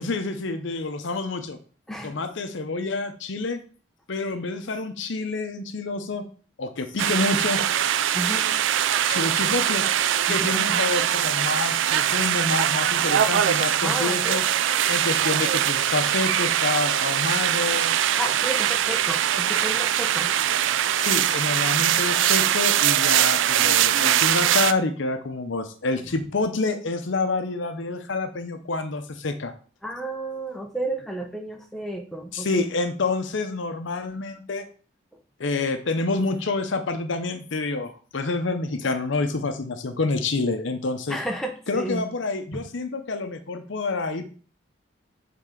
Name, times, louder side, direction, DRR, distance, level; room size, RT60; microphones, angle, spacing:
voice 1, 0.0-1.6 2.0-3.6 4.1-6.2 6.6-7.6 9.1-9.8 10.3-14.4 14.9-17.9 21.0-29.5 32.3-34.6 35.4-41.2 41.7-44.2, left 3 dB, 70° left, 8 dB, 0.7 m, -28 dB
sound 1, 7.0-24.7, right 10 dB, 75° right, 0.4 m, -22 dB
voice 2, 8.1-8.5 10.3-10.8 13.8-14.4 18.2-20.3 29.8-32.7 41.1-42.0 42.5-42.6, right 1 dB, ahead, 2 dB, 0.8 m, -32 dB
7.4 x 3.8 x 3.8 m, 0.40 s
head